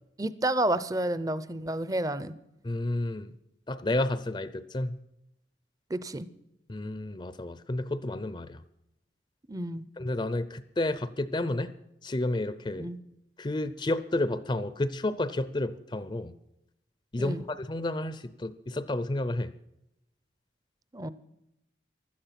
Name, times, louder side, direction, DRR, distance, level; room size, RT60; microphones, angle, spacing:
voice 1, 0.2-2.4 5.9-6.3 9.5-9.8 12.8-13.0 17.2-17.4 20.9-21.1, right 1 dB, 20° right, 16 dB, 0.6 m, -30 dB
voice 2, 2.6-3.3 3.7-5.0 6.7-8.6 10.0-11.7 12.0-12.9 13.4-16.3 17.1-19.5, left 2 dB, 25° left, 14 dB, 0.5 m, -31 dB
16.0 x 12.0 x 5.8 m, 0.85 s
head